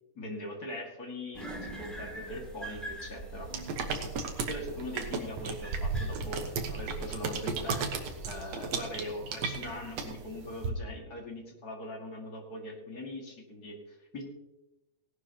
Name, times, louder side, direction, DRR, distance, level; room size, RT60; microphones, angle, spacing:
voice 1, 0.2-3.5 4.5-6.4 6.7-14.2, left 1 dB, 35° left, 0 dB, 2.1 m, -41 dB
sound 1, 1.3-8.5, right 2 dB, ahead, 1.8 m, -44 dB
sound 2, 3.5-10.7, right 4 dB, 60° right, 2.1 m, -35 dB
17.5 x 12.0 x 2.9 m, 0.99 s
omnidirectional pair, 3.7 m